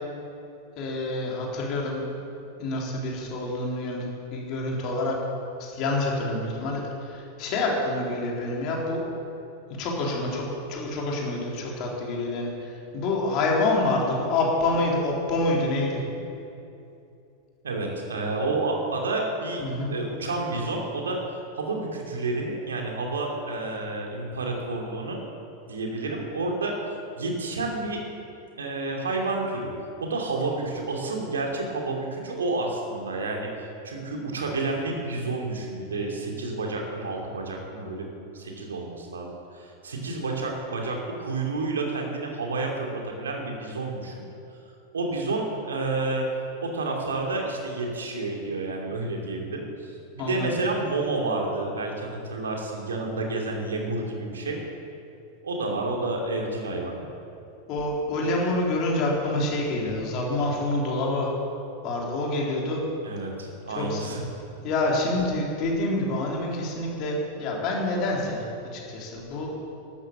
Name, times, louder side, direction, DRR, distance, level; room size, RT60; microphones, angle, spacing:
voice 1, 0.8-2.0 2.6-5.2 5.6-9.0 9.8-16.0 19.6-19.9 50.2-50.5 56.1-56.3 57.7-61.3 61.8-62.8 63.8-64.1 64.6-68.4 68.7-69.5, left 2 dB, 40° left, -2 dB, 3.8 m, -27 dB
voice 2, 17.6-19.6 19.9-21.2 21.5-25.2 25.7-26.9 27.2-28.0 28.6-29.7 30.0-38.1 38.3-44.2 44.9-46.3 46.6-54.6 55.4-57.0 63.0-64.2, right 2 dB, 70° right, 0 dB, 2.7 m, -30 dB
13.0 x 11.5 x 7.5 m, 2.7 s
figure-of-eight pair, 90°, 0 cm